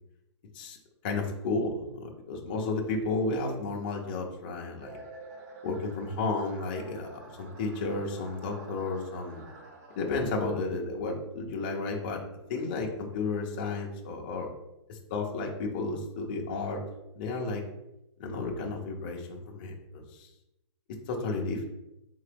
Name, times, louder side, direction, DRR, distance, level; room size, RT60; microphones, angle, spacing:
voice 1, 1.0-5.0 5.6-9.4 10.0-12.2 12.5-14.5 14.9-16.8 17.1-17.6 18.2-20.3 21.1-21.6, left 3 dB, 20° left, 0 dB, 0.5 m, -32 dB
sound 1, 4.8-11.0, right 3 dB, 30° right, 0.7 m, -49 dB
3.8 x 3.7 x 3.3 m, 0.90 s
hypercardioid pair, 175°, 16 cm